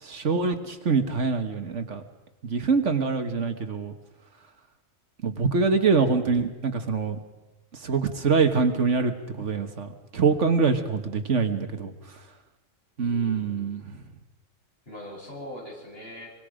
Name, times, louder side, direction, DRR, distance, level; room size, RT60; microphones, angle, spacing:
voice 1, 0.0-2.0 2.4-3.9 5.2-7.2 7.8-11.9 13.0-13.9, right 5 dB, 70° right, 7 dB, 1.8 m, -24 dB
voice 2, 13.0-13.7 14.9-16.3, left 1 dB, 50° left, -3 dB, 7.8 m, -42 dB
24.5 x 24.5 x 5.1 m, 1.1 s
omnidirectional pair, 1.3 m